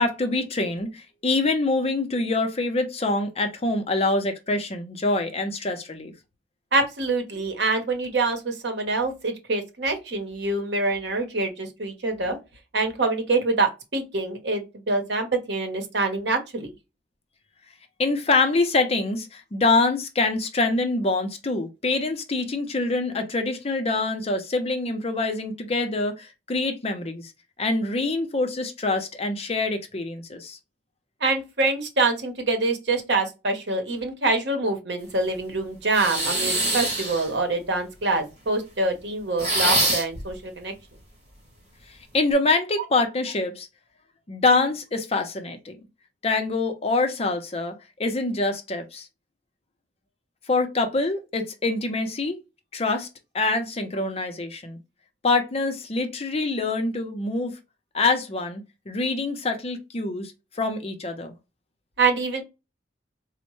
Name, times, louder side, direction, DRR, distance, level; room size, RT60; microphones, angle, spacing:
voice 1, 0.0-6.1 18.0-27.3 27.6-30.6 42.1-43.7 44.3-45.8 46.2-47.7 48.0-49.1 50.5-52.4 52.7-53.1 53.3-54.8 55.2-57.5 57.9-61.3, left 3 dB, 35° left, 0.6 m, -25 dB
voice 2, 6.7-12.4 12.7-16.7 31.2-40.7 62.0-62.4, right 3 dB, 70° right, 0.9 m, -25 dB
sound 1, 35.9-37.3 39.4-40.2, right 1 dB, 35° right, 1.9 m, -24 dB
4.2 x 2.1 x 3.0 m
head